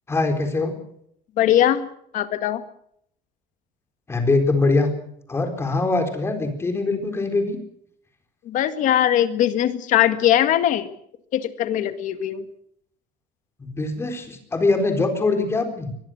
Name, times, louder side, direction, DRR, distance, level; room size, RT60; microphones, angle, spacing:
voice 1, 0.1-0.7 4.1-4.9 5.3-7.6 13.6-15.9, left 3 dB, 15° left, 6 dB, 4.1 m, -22 dB
voice 2, 1.4-1.9 2.1-2.6 8.5-10.9 11.3-12.4, left 11 dB, 50° left, 10 dB, 1.9 m, -20 dB
23.5 x 20.5 x 6.4 m, 0.70 s
cardioid pair, 170°, 16 cm